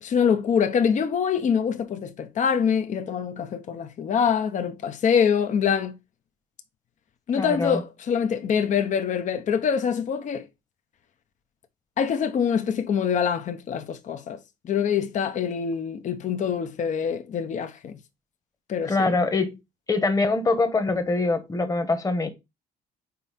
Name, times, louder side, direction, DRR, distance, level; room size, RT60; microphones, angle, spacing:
voice 1, 0.0-6.0 7.3-10.5 12.0-14.4 14.6-18.0 18.7-19.1, left 7 dB, 45° left, 0.9 m, -25 dB
voice 2, 7.3-7.8 18.8-19.6 19.9-22.3, left 3 dB, 20° left, 1.3 m, -24 dB
5.6 x 4.5 x 4.2 m
cardioid pair, 110°, 17 cm